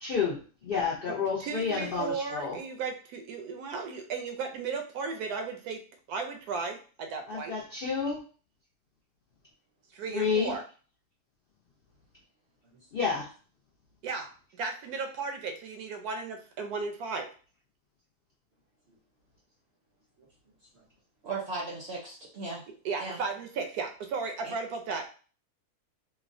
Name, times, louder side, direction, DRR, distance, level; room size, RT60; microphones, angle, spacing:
voice 1, 0.0-2.6 7.3-8.2 10.1-10.6 12.9-13.3, left 5 dB, 70° left, -4 dB, 0.5 m, -30 dB
voice 2, 1.4-5.8 6.1-7.5 9.9-10.6 14.0-17.3 22.8-25.1, right 4 dB, 80° right, 4 dB, 1.1 m, -35 dB
voice 3, 21.2-22.6 23.0-23.2 24.4-24.5, right 3 dB, 60° right, -3 dB, 0.7 m, -37 dB
3.2 x 2.1 x 2.5 m, 0.38 s
omnidirectional pair, 1.6 m